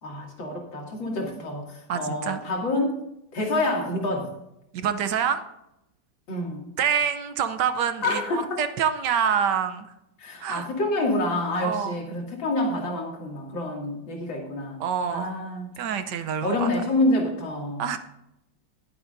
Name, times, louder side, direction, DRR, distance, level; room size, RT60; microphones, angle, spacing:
voice 1, 0.0-3.0 3.3-4.3 6.3-6.7 8.0-8.6 10.2-14.8 15.1-15.7 16.4-17.9, left 1 dB, 85° left, -1 dB, 3.2 m, -27 dB
voice 2, 1.9-2.4 4.7-5.4 6.8-9.9 10.4-10.7 11.6-12.0 14.8-15.3 15.8-16.7 17.8-18.0, right 7 dB, 70° right, 10 dB, 1.3 m, -26 dB
20.5 x 8.0 x 2.6 m, 0.86 s
omnidirectional pair, 2.0 m